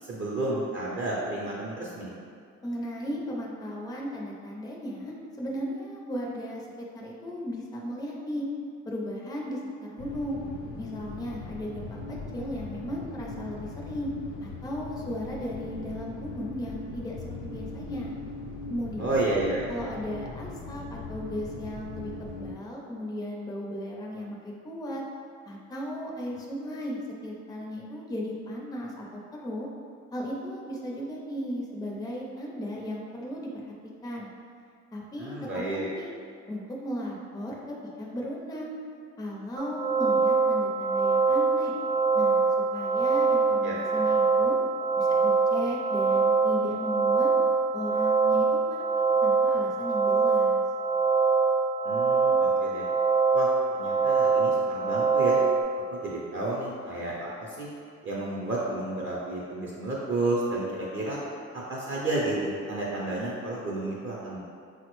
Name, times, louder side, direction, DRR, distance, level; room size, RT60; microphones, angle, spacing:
voice 1, 0.0-2.1 19.0-19.6 35.2-35.9 43.6-44.0 51.8-52.9 53.3-55.4 55.9-57.7 58.0-61.2 61.5-64.4, right 2 dB, 40° right, -5 dB, 0.5 m, -31 dB
voice 2, 2.6-8.5 8.9-10.4 10.8-14.1 14.4-18.1 18.7-19.2 19.7-25.0 25.5-29.7 30.1-33.5 34.0-34.3 34.9-36.2 36.5-38.7 39.2-41.7 42.1-44.6 45.0-47.3 47.7-50.6, equal, 15° left, -2 dB, 0.4 m, -36 dB
sound 1, 10.0-22.5, left 3 dB, 80° left, 0.5 m, -40 dB
sound 2, 39.6-55.6, right 4 dB, 85° right, 0.5 m, -24 dB
3.7 x 2.0 x 3.0 m, 2.3 s
cardioid pair, 90°, 30 cm